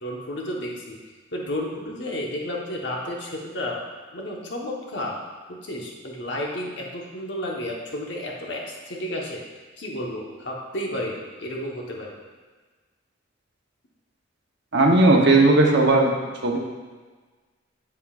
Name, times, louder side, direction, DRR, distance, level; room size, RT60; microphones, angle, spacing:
voice 1, 0.0-1.0 1.3-3.8 4.1-5.2 5.5-9.4 9.8-12.1, left 1 dB, 55° left, -2 dB, 1.2 m, -32 dB
voice 2, 14.7-16.1 16.4-16.6, right 2 dB, 55° right, 1 dB, 0.9 m, -16 dB
8.1 x 7.3 x 2.5 m, 1.3 s
head